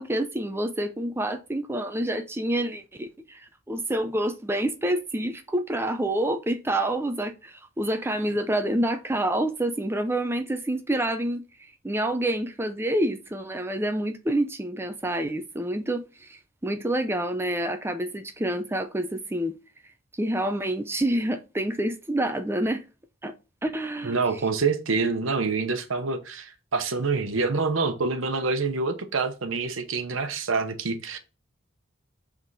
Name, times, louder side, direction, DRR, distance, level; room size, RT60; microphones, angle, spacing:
voice 1, 0.0-19.6 20.1-22.8 23.2-23.3 23.6-24.2, right 1 dB, 10° right, 0.5 m, -28 dB
voice 2, 24.0-31.2, right 4 dB, 75° right, 0.9 m, -26 dB
7.4 x 3.6 x 4.0 m
head